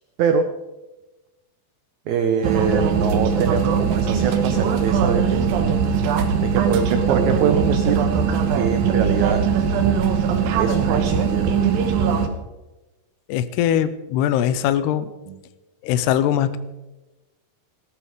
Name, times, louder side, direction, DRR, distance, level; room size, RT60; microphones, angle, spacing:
voice 1, 2.1-5.5 6.4-8.0 8.5-9.4 10.6-11.6 15.3-15.4, right 6 dB, 85° right, 7 dB, 1.6 m, -23 dB
sound 1, 2.4-12.3, right 6 dB, 65° right, 2.8 m, -20 dB
voice 2, 13.3-15.1 15.8-16.6, left 10 dB, 85° left, 14 dB, 2.8 m, -21 dB
16.5 x 13.0 x 5.0 m, 1.1 s
omnidirectional pair, 4.6 m